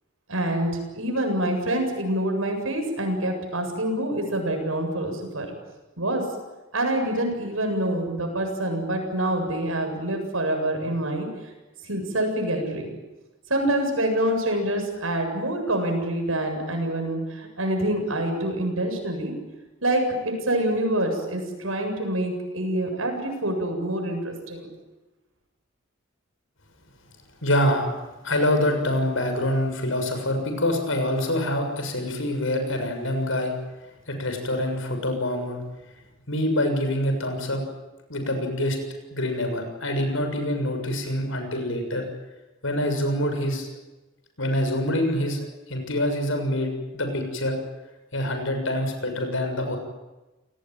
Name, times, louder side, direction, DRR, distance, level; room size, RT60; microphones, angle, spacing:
voice 1, 0.3-5.5 6.0-6.2 6.7-11.3 11.8-12.9 13.5-19.3 19.8-24.7, right 1 dB, 85° right, 4 dB, 7.9 m, -26 dB
voice 2, 27.4-27.9 28.2-33.5 34.1-35.6 36.3-37.6 38.1-38.8 39.1-42.0 42.6-43.7 44.4-45.4 45.7-47.6 48.1-49.8, left 1 dB, 75° left, 6 dB, 6.9 m, -25 dB
29.0 x 19.0 x 9.3 m, 1.1 s
head